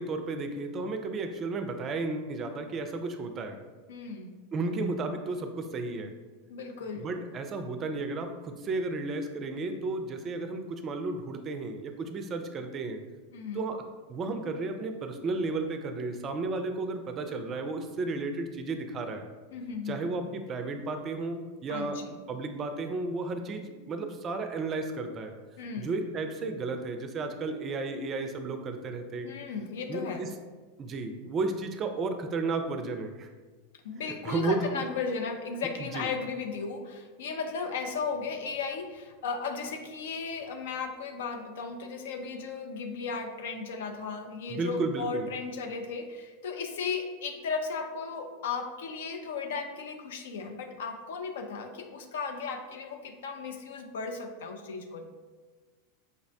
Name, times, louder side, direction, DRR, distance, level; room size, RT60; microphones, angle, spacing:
voice 1, 0.0-3.6 4.5-6.1 6.9-13.0 13.5-13.8 14.1-19.3 19.9-25.3 25.8-29.3 29.9-30.3 30.8-33.3 34.2-34.8 35.8-36.1 44.5-45.3, right 3 dB, 35° right, 6 dB, 0.4 m, -33 dB
voice 2, 3.9-4.3 6.5-7.1 13.3-13.6 19.5-20.1 21.7-22.2 25.6-25.9 29.2-30.3 33.8-55.0, left 5 dB, 70° left, 4 dB, 0.4 m, -35 dB
5.1 x 2.0 x 2.6 m, 1.3 s
hypercardioid pair, 90°, 0 cm